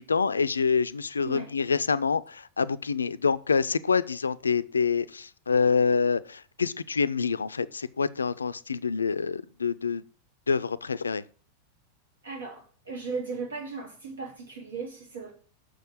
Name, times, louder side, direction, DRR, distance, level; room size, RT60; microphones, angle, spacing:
voice 1, 0.0-10.0 10.5-11.2, left 5 dB, 75° left, 0.4 m, -26 dB
voice 2, 12.2-15.3, right 4 dB, 75° right, 3.2 m, -37 dB
6.5 x 6.4 x 5.0 m
figure-of-eight pair, 90°, 0 cm